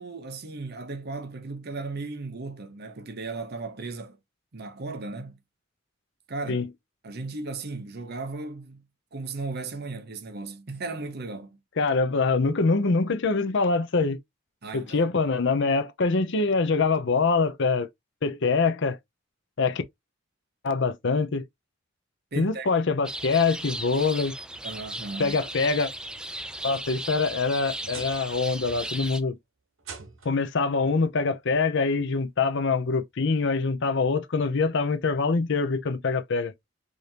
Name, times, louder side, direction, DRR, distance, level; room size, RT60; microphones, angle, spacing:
voice 1, 0.0-4.2 4.5-5.4 6.3-6.7 7.0-8.8 9.1-11.6 14.6-15.1 22.3-22.7 24.6-25.4, right 3 dB, 50° right, 0.8 m, -36 dB
voice 2, 11.8-14.2 14.7-17.9 18.2-19.0 19.6-19.8 20.6-21.5 22.4-24.4 25.2-25.9 26.6-29.4 30.2-36.5, left 4 dB, 60° left, 0.6 m, -24 dB
sound 1, 23.0-29.2, right 1 dB, 5° right, 0.4 m, -36 dB
sound 2, 27.0-28.4 28.7-29.1 29.8-30.5 31.7-31.8 32.4-32.5 34.1-34.2, right 4 dB, 75° right, 1.1 m, -45 dB
5.0 x 2.7 x 2.8 m
head